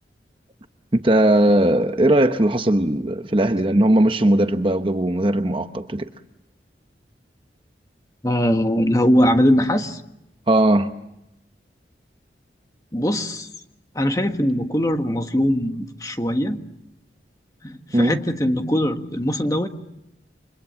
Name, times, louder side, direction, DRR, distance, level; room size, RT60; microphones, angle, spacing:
voice 1, 0.9-6.1 10.5-10.9 17.9-18.2, right 1 dB, 30° right, 1.0 m, -18 dB
voice 2, 8.2-10.0 12.9-13.5 13.9-16.6 17.6-19.7, equal, 20° left, 1.6 m, -21 dB
29.5 x 25.5 x 7.6 m
head